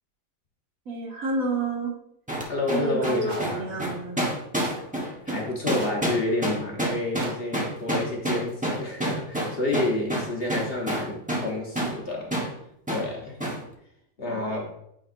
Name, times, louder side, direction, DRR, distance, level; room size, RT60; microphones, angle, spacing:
voice 1, 0.9-1.9 2.7-4.2 14.2-14.5, right 2 dB, 70° right, -3 dB, 2.0 m, -29 dB
sound 1, 2.3-11.5 11.8-12.0 12.3-12.5 12.9-13.1 13.4-13.6, right 1 dB, 5° right, 0.9 m, -28 dB
voice 2, 2.5-3.8 5.3-12.4 12.9-13.4 14.2-14.7, left 2 dB, 45° left, -1 dB, 1.1 m, -29 dB
sound 2, 3.2-3.6 4.6-5.0 5.7-6.1 7.1-7.5, right 1 dB, 35° right, 1.1 m, -41 dB
8.9 x 4.2 x 2.5 m, 0.75 s
omnidirectional pair, 1.5 m